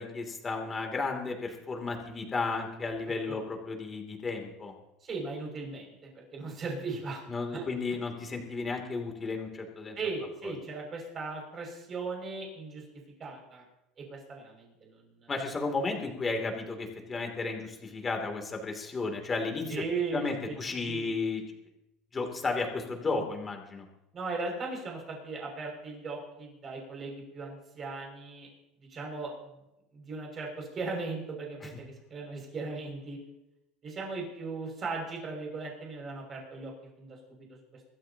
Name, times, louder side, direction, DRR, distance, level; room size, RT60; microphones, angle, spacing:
voice 1, 0.0-4.7 7.3-10.0 15.3-19.8 20.1-21.4 22.1-23.8, left 3 dB, 20° left, 3 dB, 2.9 m, -33 dB
voice 2, 5.0-7.2 7.5-7.7 10.0-12.8 13.2-13.6 14.0-15.3 19.7-20.6 20.8-21.1 24.1-28.5 28.9-29.3 29.9-33.2 33.8-37.2, right 3 dB, 30° right, 0 dB, 6.4 m, -37 dB
25.0 x 13.5 x 3.0 m, 0.89 s
cardioid pair, 135°, 0 cm